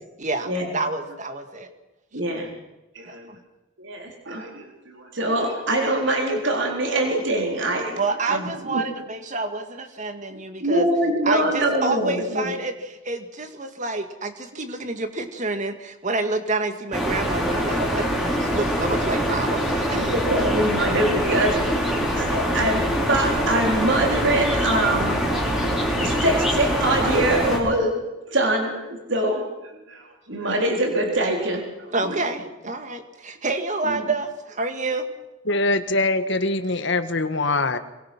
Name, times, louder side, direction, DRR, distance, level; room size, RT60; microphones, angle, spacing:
voice 1, 0.2-1.7 3.1-3.4 8.0-10.9 11.2-20.1 31.9-35.1, right 3 dB, 35° right, 7 dB, 2.2 m, -28 dB
voice 2, 2.1-2.5 2.9-3.3 3.8-8.0 8.3-8.8 10.6-12.5 19.9-25.2 25.8-31.6 32.0-32.2 33.8-34.0, right 1 dB, 60° right, 1 dB, 4.0 m, -24 dB
sound 1, 16.9-27.6, equal, 5° right, 5.9 m, -24 dB
voice 3, 35.5-37.8, left 2 dB, 55° left, 9 dB, 1.7 m, -23 dB
27.5 x 23.5 x 6.2 m, 1.0 s
head